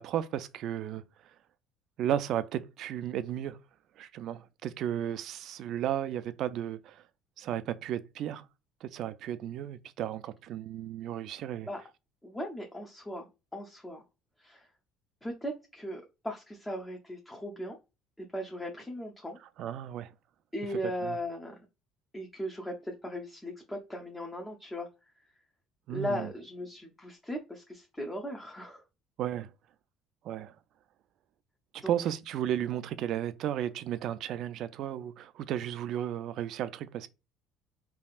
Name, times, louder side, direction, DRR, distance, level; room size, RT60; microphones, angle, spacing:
voice 1, 0.0-1.3 2.0-3.6 4.0-7.0 7.4-8.5 8.8-11.7 19.6-20.1 21.1-21.2 25.9-26.3 29.2-29.5 30.2-30.5 31.7-37.1, right 11 dB, 60° right, 0.3 m, -34 dB
voice 2, 12.2-14.0 14.4-14.7 15.2-17.8 18.2-19.4 20.5-21.7 22.1-25.3 25.9-28.9 31.8-32.0, equal, 10° left, 0.6 m, -38 dB
3.4 x 2.3 x 2.4 m
supercardioid pair, 90°, 0 cm